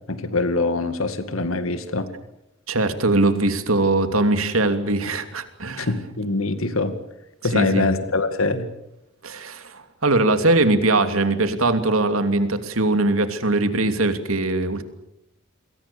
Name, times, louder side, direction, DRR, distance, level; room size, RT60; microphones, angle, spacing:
voice 1, 0.1-2.1 5.8-7.0 7.4-8.7, left 3 dB, 80° left, 10 dB, 2.2 m, -23 dB
voice 2, 2.7-5.9 7.5-7.9 9.2-14.8, right 2 dB, 90° right, 8 dB, 2.9 m, -21 dB
29.0 x 22.5 x 7.0 m, 0.82 s
head